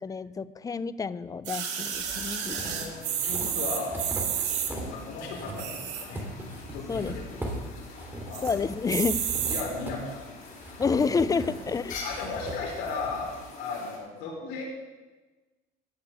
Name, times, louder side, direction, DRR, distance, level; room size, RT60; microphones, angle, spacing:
voice 1, 0.0-2.9 6.9-7.2 8.4-9.2 10.8-12.0, left 5 dB, 20° left, 16 dB, 0.4 m, -29 dB
sound 1, 1.5-14.0, left 4 dB, 50° left, 5.5 m, -46 dB
sound 2, 1.5-4.7 5.5-6.2 6.7-6.8 6.9-7.0 7.4-7.8 8.3-8.5 8.9-9.6 10.4-10.5, right 8 dB, 80° right, 2.2 m, -31 dB
sound 3, 1.9-5.0 5.2-13.4, right 1 dB, 10° right, 3.1 m, -40 dB
voice 2, 2.5-4.0 4.7-6.2 6.7-7.4 8.2-8.5 9.3-10.3 11.3-11.4 12.0-14.6, left 4 dB, 75° left, -1 dB, 4.6 m, -36 dB
14.0 x 6.7 x 8.5 m, 1.3 s
cardioid pair, 125°, 18 cm